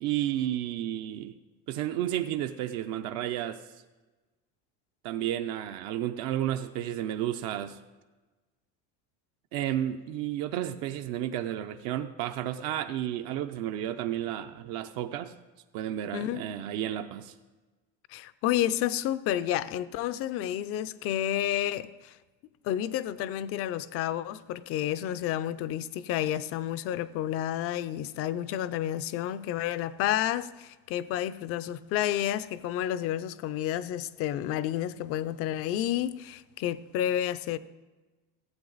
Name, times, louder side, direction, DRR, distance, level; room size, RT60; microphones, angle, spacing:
voice 1, 0.0-1.4 1.7-3.6 5.0-7.8 9.5-15.3 15.7-17.3, right 12 dB, 65° right, 0.6 m, -32 dB
voice 2, 18.1-22.1 22.6-37.6, left 12 dB, 45° left, 0.4 m, -30 dB
15.0 x 8.5 x 3.9 m
cardioid pair, 170°, 33 cm